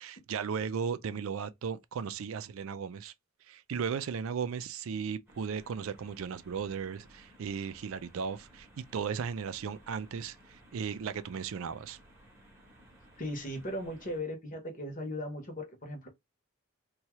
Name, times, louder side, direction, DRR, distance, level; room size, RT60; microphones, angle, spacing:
voice 1, 0.0-3.1 3.5-12.0, right 6 dB, 70° right, 0.4 m, -36 dB
sound 1, 5.3-14.2, equal, 10° right, 0.9 m, -58 dB
voice 2, 13.2-16.1, left 1 dB, 40° left, 0.9 m, -37 dB
2.8 x 2.3 x 2.9 m
head